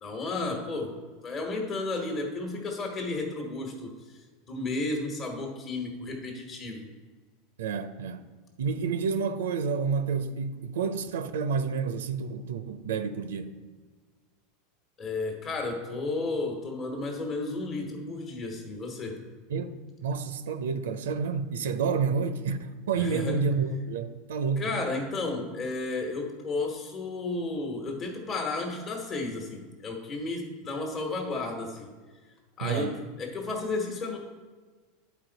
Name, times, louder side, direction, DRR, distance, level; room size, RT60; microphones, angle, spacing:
voice 1, 0.0-6.9 15.0-19.2 23.0-23.4 24.6-31.9 32.6-34.2, left 3 dB, 35° left, 1.2 m, -33 dB
voice 2, 7.6-8.2 8.6-13.6 19.5-24.7 32.6-33.0, right 5 dB, 85° right, 0.4 m, -29 dB
10.0 x 4.4 x 4.0 m
hypercardioid pair, 100°, 0 cm